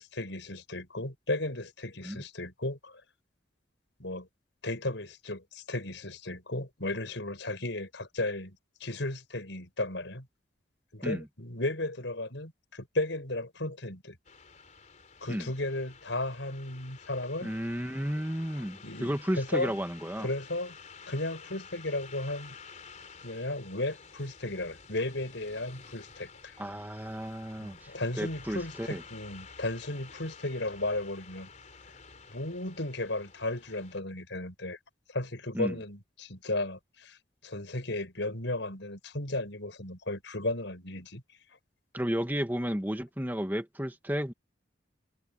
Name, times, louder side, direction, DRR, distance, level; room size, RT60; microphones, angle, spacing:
voice 1, 0.0-3.0 4.0-4.3 4.6-10.3 10.9-14.2 15.2-17.5 18.8-19.8 20.2-20.8 21.1-22.6 23.2-26.6 27.6-31.5 32.3-34.8 35.1-41.2, left 2 dB, 75° left, 5.6 m, -35 dB
sound 1, 14.2-34.0, left 5 dB, 40° left, 4.1 m, -51 dB
voice 2, 17.4-20.3 26.6-27.9 28.2-29.0 35.5-35.8 41.9-44.3, equal, 10° right, 2.0 m, -33 dB
head